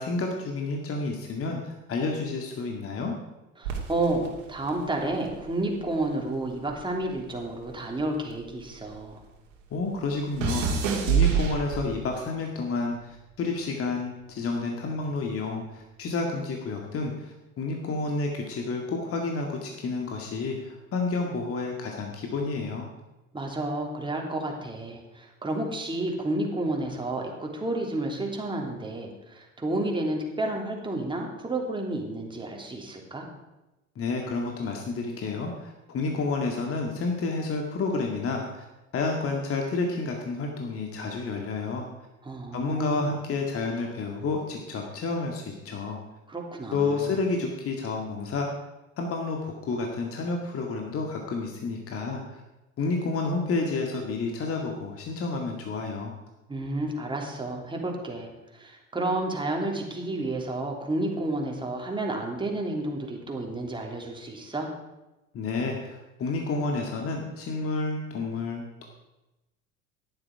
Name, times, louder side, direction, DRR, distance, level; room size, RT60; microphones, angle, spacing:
voice 1, 0.0-3.1 9.7-22.9 34.0-38.6 38.9-41.9 42.5-46.0 46.7-48.5 49.0-52.4 52.8-56.2 65.3-68.8, left 3 dB, 35° left, 1 dB, 2.0 m, -30 dB
voice 2, 3.6-9.2 23.3-33.3 42.2-43.1 46.3-47.1 56.5-64.7, right 2 dB, 10° right, 0 dB, 3.2 m, -31 dB
sound 1, 3.6-6.1 6.4-9.1 9.3-12.2 12.9-13.3, right 7 dB, 60° right, 2.7 m, -29 dB
14.5 x 11.0 x 4.9 m, 0.99 s
figure-of-eight pair, 70°, 42 cm